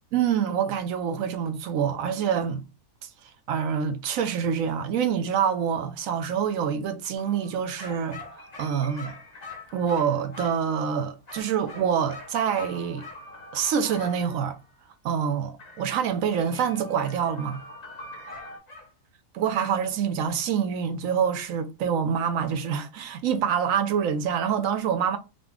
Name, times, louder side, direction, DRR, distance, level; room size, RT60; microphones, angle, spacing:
voice 1, 0.1-2.6 3.0-3.1 3.5-9.1 9.7-13.0 13.5-14.6 15.0-17.6 19.3-25.2, right 7 dB, 70° right, 0.9 m, -26 dB
sound 1, 7.2-10.9 11.7-14.8 15.6-18.6, left 1 dB, 55° left, 1.9 m, -47 dB
sound 2, 7.8-10.7 11.3-13.2 13.9-14.2 18.3-18.9, left 4 dB, 35° left, 0.9 m, -43 dB
3.8 x 2.4 x 3.5 m
omnidirectional pair, 1.7 m